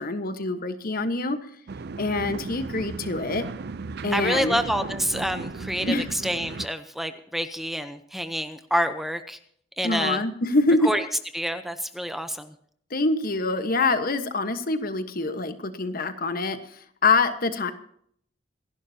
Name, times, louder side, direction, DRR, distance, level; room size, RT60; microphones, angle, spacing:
voice 1, 0.0-1.4 2.0-3.5 4.0-4.6 5.9-6.1 9.8-10.9 12.9-17.7, left 3 dB, 50° left, 9 dB, 1.3 m, -25 dB
sound 1, 1.7-6.7, right 4 dB, 60° right, 0.5 m, -36 dB
voice 2, 4.1-9.4 9.8-10.2 10.8-11.0 11.3-12.5, equal, ahead, 9 dB, 0.8 m, -28 dB
27.0 x 11.5 x 2.8 m, 0.64 s
head